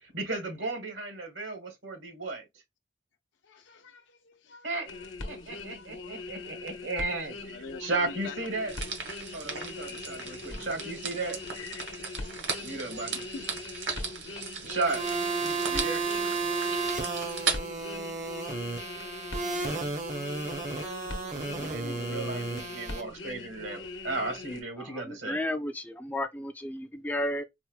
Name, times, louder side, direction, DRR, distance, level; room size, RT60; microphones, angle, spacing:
voice 1, 0.0-2.4 4.6-4.9 5.3-8.7 9.3-11.4 12.6-13.2 14.6-15.0 15.4-16.1 21.6-25.4, right 3 dB, 80° right, 1.3 m, -35 dB
voice 2, 3.4-5.1 5.6-5.9 6.1-6.3 6.5-6.7 7.5-8.9 9.8-10.4 11.1-11.8 12.5-13.5 14.7-14.8, left 4 dB, 75° left, 0.5 m, -47 dB
sound 1, 4.9-24.6, left 3 dB, 90° left, 0.8 m, -41 dB
sound 2, 8.7-17.6, right 5 dB, 65° right, 0.9 m, -37 dB
sound 3, 14.9-23.0, right 4 dB, 40° right, 0.6 m, -33 dB
voice 3, 24.8-27.4, left 1 dB, 10° left, 0.3 m, -33 dB
4.3 x 2.1 x 2.3 m
head